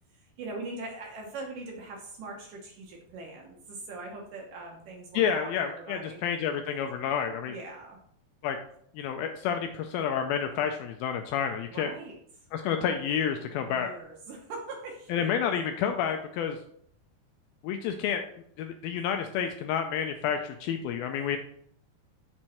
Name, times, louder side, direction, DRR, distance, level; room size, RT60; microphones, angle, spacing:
voice 1, 0.1-6.2 7.4-8.0 11.7-12.2 13.6-15.5, right 3 dB, 70° right, 0 dB, 2.3 m, -41 dB
voice 2, 5.1-7.5 8.4-8.6 9.0-11.9 12.5-13.9 15.1-16.6 17.6-18.3 18.6-21.4, left 8 dB, 80° left, 5 dB, 2.2 m, -29 dB
6.3 x 4.5 x 4.3 m, 0.66 s
omnidirectional pair, 4.6 m